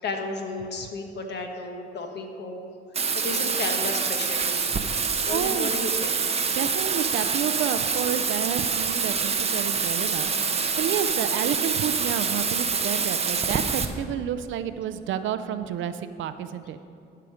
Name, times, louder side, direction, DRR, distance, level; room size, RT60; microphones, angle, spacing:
voice 1, 0.0-2.6 3.2-4.7 5.2-6.1, left 3 dB, 60° left, 4 dB, 1.2 m, -33 dB
Bathtub (filling or washing), 2.9-13.8, right 5 dB, 30° right, 0.7 m, -26 dB
voice 2, 5.3-5.8 6.5-16.8, right 9 dB, 75° right, 11 dB, 0.5 m, -30 dB
12.0 x 5.7 x 5.0 m, 2.5 s
cardioid pair, 90°, 20 cm